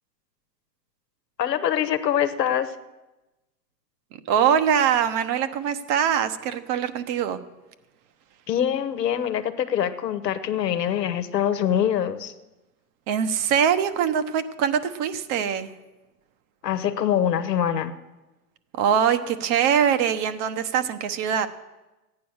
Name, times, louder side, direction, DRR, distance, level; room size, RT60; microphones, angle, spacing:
voice 1, 1.4-2.8 8.5-12.3 16.6-17.9, left 9 dB, 85° left, 10 dB, 1.1 m, -24 dB
voice 2, 4.3-7.4 13.1-15.7 18.7-21.5, right 8 dB, 50° right, 10 dB, 1.2 m, -23 dB
14.0 x 9.4 x 6.4 m, 1.1 s
hypercardioid pair, 100°, 48 cm